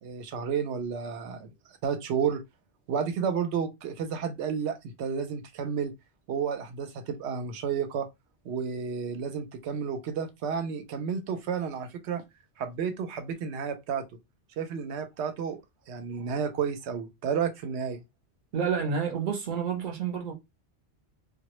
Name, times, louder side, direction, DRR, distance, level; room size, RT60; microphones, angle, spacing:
voice 1, 0.0-2.4 2.9-5.9 6.3-8.1 8.4-12.2 12.6-14.0 14.6-15.6 15.9-18.0, right 7 dB, 90° right, 0.9 m, -31 dB
voice 2, 18.5-20.3, right 6 dB, 55° right, 0.8 m, -29 dB
2.1 x 2.1 x 2.9 m
omnidirectional pair, 1.1 m